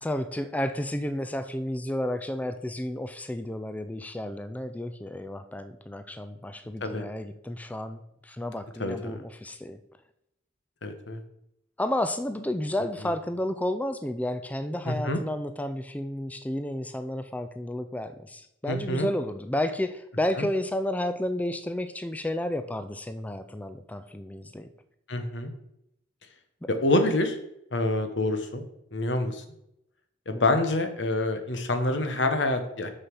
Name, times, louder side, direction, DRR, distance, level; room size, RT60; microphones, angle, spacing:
voice 1, 0.0-9.8 11.8-24.7 30.3-30.4, left 1 dB, 10° left, 10 dB, 0.4 m, -31 dB
voice 2, 8.8-9.2 10.8-11.2 13.0-13.1 14.8-15.2 18.7-19.1 20.4-20.5 25.1-25.5 26.7-27.4 27.7-28.6 28.9-29.4 30.3-32.9, left 2 dB, 70° left, 7 dB, 1.1 m, -26 dB
6.5 x 5.6 x 6.1 m, 0.81 s
head